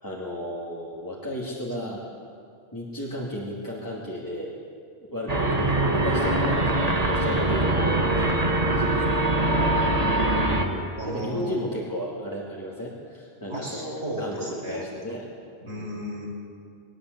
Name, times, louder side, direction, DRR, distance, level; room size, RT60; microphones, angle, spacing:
voice 1, 0.0-2.0 2.7-4.6 5.1-9.2 10.6-15.3 15.6-16.0, equal, 15° left, -5 dB, 2.6 m, -34 dB
sound 1, 5.3-10.6, right 1 dB, 35° right, 1.8 m, -23 dB
voice 2, 9.2-9.9 11.0-11.6 13.4-14.9 15.7-16.3, equal, 85° right, -2 dB, 5.7 m, -35 dB
21.5 x 19.0 x 8.2 m, 2.4 s
omnidirectional pair, 1.1 m